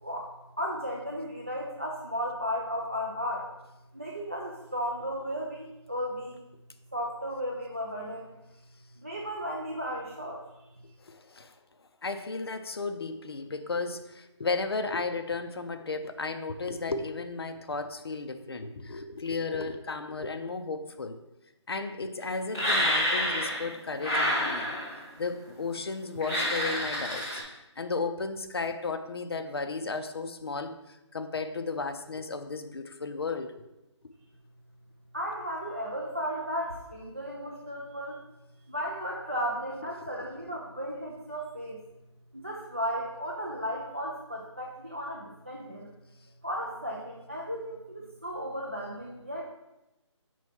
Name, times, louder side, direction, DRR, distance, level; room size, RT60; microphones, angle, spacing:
voice 1, 0.0-3.5 3.9-6.4 6.9-8.4 9.0-10.4 35.1-38.2 38.7-41.8 42.3-45.9 46.4-49.4, equal, 25° right, -2 dB, 0.4 m, -35 dB
voice 2, 11.0-11.6 12.0-21.2 21.7-24.7 25.2-27.4 27.8-33.5 40.0-40.1, left 4 dB, 55° left, 8 dB, 0.5 m, -34 dB
sound 1, 22.5-23.7 24.0-25.1 26.2-27.4, left 1 dB, 5° left, 1.2 m, -28 dB
5.4 x 3.1 x 5.6 m, 0.96 s
hypercardioid pair, 175°, 16 cm